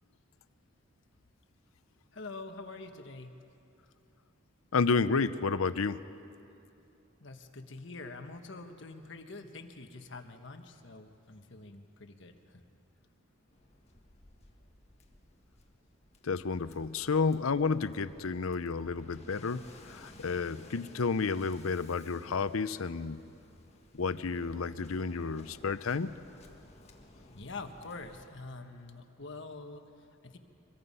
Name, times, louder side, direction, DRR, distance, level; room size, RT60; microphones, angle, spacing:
voice 1, 2.1-3.4 7.2-12.6 27.3-30.4, left 3 dB, 60° left, 6 dB, 1.4 m, -46 dB
voice 2, 4.7-6.0 16.2-23.2 23.9-26.2, left 4 dB, 90° left, 14 dB, 0.6 m, -31 dB
Waves surf, 13.5-28.3, left 2 dB, 30° left, 1.6 m, -56 dB
25.0 x 22.0 x 5.6 m, 2.7 s
head